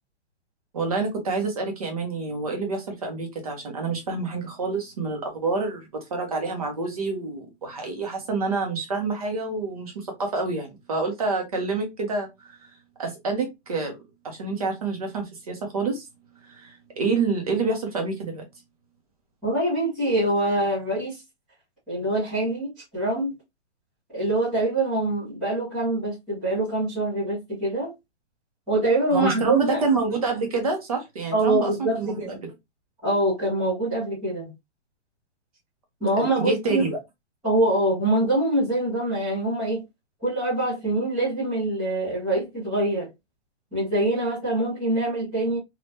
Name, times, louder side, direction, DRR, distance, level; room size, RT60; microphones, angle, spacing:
voice 1, 0.7-12.6 13.0-14.0 14.2-16.1 16.5-18.5 29.1-32.5 36.1-37.0, right 3 dB, 30° right, 0.8 m, -27 dB
voice 2, 19.4-21.2 21.9-23.3 24.1-27.9 28.7-29.8 31.3-32.4 33.0-34.5 36.0-36.9 37.4-39.8 40.2-43.1 43.7-45.6, right 1 dB, ahead, 0.6 m, -24 dB
3.6 x 2.4 x 2.6 m
hypercardioid pair, 180°, 35 cm